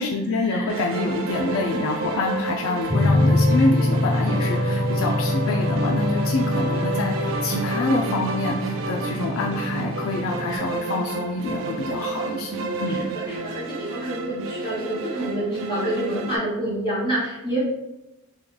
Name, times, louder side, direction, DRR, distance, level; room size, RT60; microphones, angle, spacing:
voice 1, 0.0-13.1, left 3 dB, 70° left, 0 dB, 0.3 m, -26 dB
sound 1, 0.7-16.4, right 3 dB, 65° right, 0.4 m, -30 dB
sound 2, 2.9-10.6, left 2 dB, 25° right, 1.0 m, -24 dB
voice 2, 12.9-17.6, right 1 dB, 20° left, -7 dB, 1.2 m, -28 dB
3.1 x 2.2 x 3.6 m, 0.95 s
head